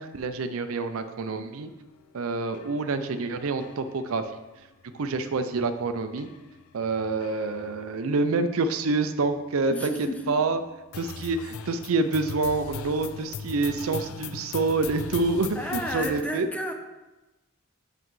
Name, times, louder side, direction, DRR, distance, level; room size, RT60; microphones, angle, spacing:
voice 1, 0.0-1.7 2.1-4.3 4.9-6.3 6.7-9.9 10.3-10.6 11.0-16.5, right 3 dB, 75° right, 9 dB, 0.5 m, -27 dB
sound 1, 2.0-2.1 2.5-7.8 8.9-9.0 10.1-10.2 10.9-16.2, left 7 dB, 80° left, 0.4 m, -41 dB
voice 2, 9.7-10.4 15.5-16.7, equal, 5° left, 3 dB, 0.6 m, -32 dB
7.9 x 5.7 x 3.1 m, 1.1 s
head